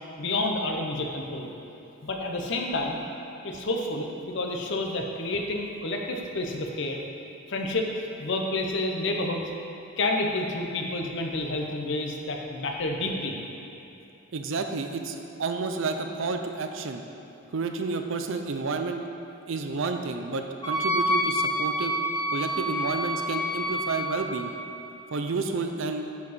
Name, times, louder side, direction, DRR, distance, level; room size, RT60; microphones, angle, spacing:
voice 1, 0.2-1.5 2.0-3.0 3.4-7.0 7.5-7.9 8.2-9.4 10.0-13.4, left 2 dB, 55° left, 1 dB, 0.8 m, -29 dB
voice 2, 14.3-17.0 17.5-19.1 19.5-22.0 22.3-24.5 25.1-26.1, right 4 dB, 65° right, 6 dB, 0.5 m, -30 dB
Wind instrument woodwind instrument, 20.6-24.2, equal, 20° left, 1.2 m, -28 dB
9.6 x 4.7 x 4.2 m, 3.0 s
head